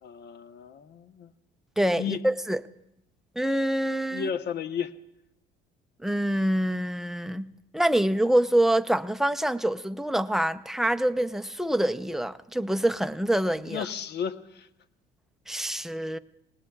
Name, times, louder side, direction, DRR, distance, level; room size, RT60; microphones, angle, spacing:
voice 1, 0.0-1.3 2.0-2.2 4.1-4.9 13.7-14.7, left 7 dB, 55° left, 1.0 m, -33 dB
voice 2, 1.8-2.6 3.4-4.3 6.0-13.8 15.5-16.2, right 1 dB, ahead, 0.6 m, -26 dB
27.0 x 19.5 x 2.4 m
supercardioid pair, 80°, 21 cm